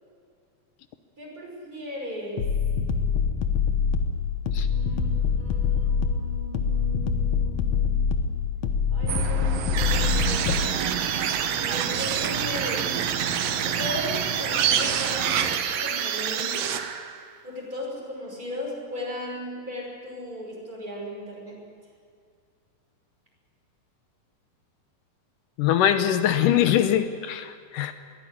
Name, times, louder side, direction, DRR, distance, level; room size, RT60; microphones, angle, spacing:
voice 1, 1.2-2.4 4.6-8.4 8.9-10.7 11.6-12.9 13.6-16.7 17.4-21.6, left 1 dB, 25° right, -2 dB, 6.1 m, -37 dB
sound 1, 2.4-10.7, left 6 dB, 65° left, 2.2 m, -25 dB
sound 2, 9.1-15.6, right 8 dB, 60° right, 2.0 m, -29 dB
sound 3, 9.8-17.3, right 9 dB, 80° right, 2.8 m, -29 dB
voice 2, 25.6-27.9, left 10 dB, 80° left, 10 dB, 2.4 m, -22 dB
22.0 x 16.5 x 9.9 m, 2.2 s
omnidirectional pair, 3.8 m